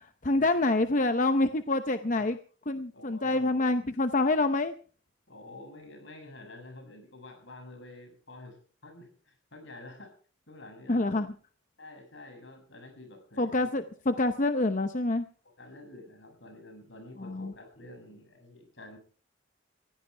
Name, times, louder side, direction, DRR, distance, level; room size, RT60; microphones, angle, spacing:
voice 1, 0.0-2.3 2.7-4.7 10.9-11.3 13.4-15.3 17.2-17.5, left 2 dB, 40° left, 9 dB, 0.8 m, -27 dB
voice 2, 2.9-3.4 5.3-8.6 8.8-10.1 10.5-11.1 11.8-13.6 15.4-19.0, left 2 dB, 70° left, 4 dB, 7.0 m, -49 dB
20.5 x 16.0 x 3.4 m, 0.40 s
head